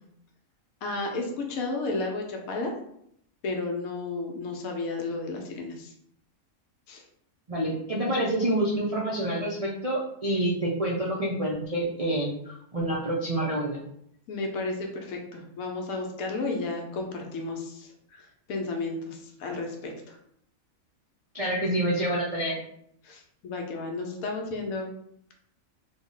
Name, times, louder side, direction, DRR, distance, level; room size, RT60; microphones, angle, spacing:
voice 1, 0.8-2.7 3.4-5.9 6.9-7.0 14.3-20.2 23.0-24.9, left 3 dB, 85° left, 2 dB, 1.2 m, -33 dB
voice 2, 7.5-13.8 21.3-22.6, right 1 dB, 70° right, -4 dB, 0.3 m, -27 dB
3.6 x 2.1 x 3.7 m, 0.71 s
omnidirectional pair, 1.5 m